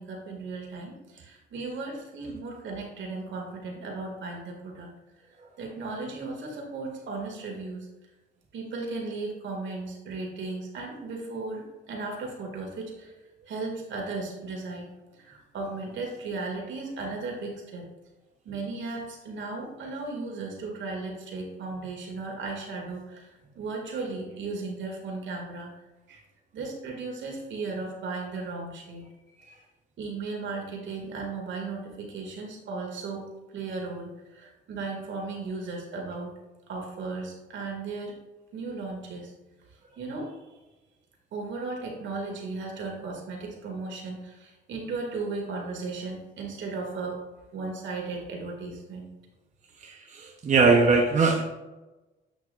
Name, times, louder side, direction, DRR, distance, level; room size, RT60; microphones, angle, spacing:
voice 1, 0.0-4.9 5.6-7.9 8.5-13.1 13.4-14.9 15.1-17.8 18.5-23.3 23.6-25.7 26.1-26.2 26.5-29.0 30.0-33.3 33.5-36.3 36.7-38.1 38.5-39.3 40.0-40.4 41.3-47.2 47.5-49.1, right 3 dB, 70° right, 0 dB, 2.1 m, -36 dB
voice 2, 49.8-51.4, right 4 dB, 40° right, 1 dB, 0.9 m, -21 dB
8.2 x 6.2 x 2.5 m, 1.1 s
cardioid pair, 90°, 20 cm